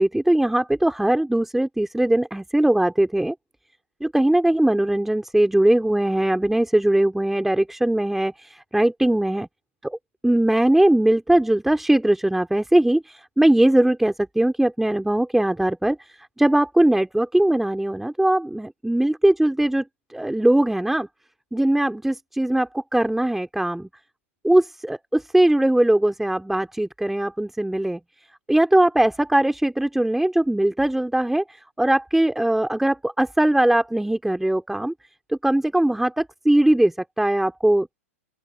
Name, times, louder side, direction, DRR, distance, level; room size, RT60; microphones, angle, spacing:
voice 1, 0.0-3.3 4.0-9.5 9.8-10.0 10.2-19.8 20.1-21.1 21.5-23.9 24.4-28.0 28.5-34.9 35.3-37.9, right 1 dB, 5° right, 3.7 m, -20 dB
open air
figure-of-eight pair, 105°, 8 cm